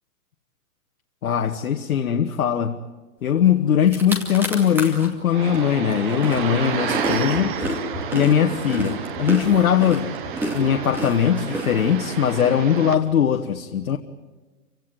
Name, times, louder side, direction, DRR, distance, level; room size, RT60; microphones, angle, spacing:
voice 1, 1.2-2.8 3.2-7.6 8.1-10.1 10.5-14.0, left 9 dB, 70° left, 4 dB, 1.5 m, -20 dB
sound 1, 3.5-3.6 3.8-5.1 5.5-12.3, equal, 5° right, 2.4 m, -30 dB
sound 2, 5.3-12.9, right 8 dB, 35° right, 1.6 m, -30 dB
28.5 x 17.0 x 9.3 m, 1.3 s
hypercardioid pair, 160°, 45 cm